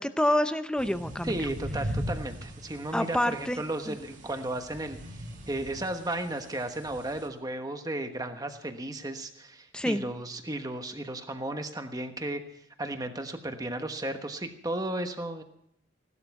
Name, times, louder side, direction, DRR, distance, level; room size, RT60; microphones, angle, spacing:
voice 1, 0.0-1.4 2.9-4.0 9.7-10.0, left 1 dB, 5° left, 10 dB, 0.6 m, -28 dB
sound 1, 0.8-7.3, equal, 40° right, 2.2 m, -39 dB
voice 2, 1.2-12.4 12.8-15.4, right 1 dB, 20° right, 7 dB, 1.2 m, -34 dB
16.5 x 12.5 x 6.0 m, 0.76 s
head